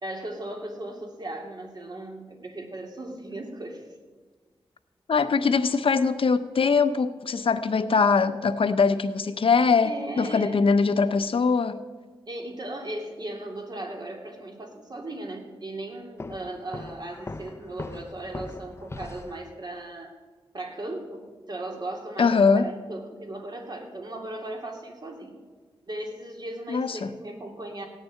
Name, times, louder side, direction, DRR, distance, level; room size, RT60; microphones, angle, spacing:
voice 1, 0.0-3.9 9.8-10.6 12.3-20.1 20.5-25.3 25.9-27.9, right 1 dB, 45° right, 2.4 m, -37 dB
voice 2, 5.1-9.9 10.2-11.8 22.2-22.7 26.7-27.1, left 5 dB, 65° left, 0.7 m, -22 dB
Walk footsteps, 16.2-19.5, left 2 dB, 25° left, 0.5 m, -40 dB
16.5 x 6.8 x 9.4 m
wide cardioid pair, 135°, 10 cm